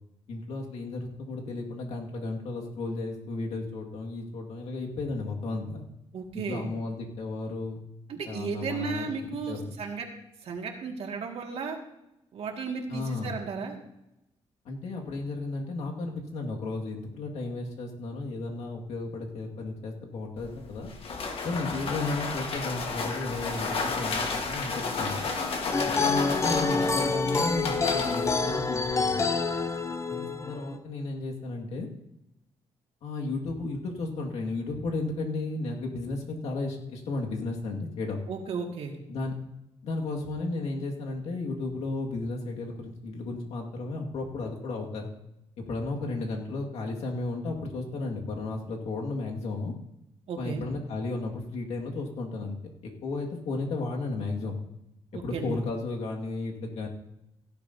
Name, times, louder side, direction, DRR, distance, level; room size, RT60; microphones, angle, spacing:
voice 1, 0.3-5.8 6.3-7.8 8.3-9.0 9.5-9.8 12.9-13.4 14.7-20.9 21.4-25.3 25.8-29.2 30.2-31.9 33.0-38.2 39.1-39.4 39.8-45.1 45.6-49.7 50.4-52.6 52.8-54.6 55.1-56.9, left 3 dB, 75° left, 0 dB, 2.0 m, -34 dB
voice 2, 6.1-6.7 8.1-10.1 10.4-11.8 12.3-13.8 38.3-38.9 50.3-50.6 55.1-55.6, right 5 dB, 70° right, 1 dB, 2.1 m, -34 dB
sound 1, 20.4-29.1, left 4 dB, 60° left, 1.5 m, -32 dB
sound 2, 25.7-30.8, left 4 dB, 25° left, 0.7 m, -27 dB
17.0 x 11.5 x 2.8 m, 0.86 s
cardioid pair, 100°, 11 cm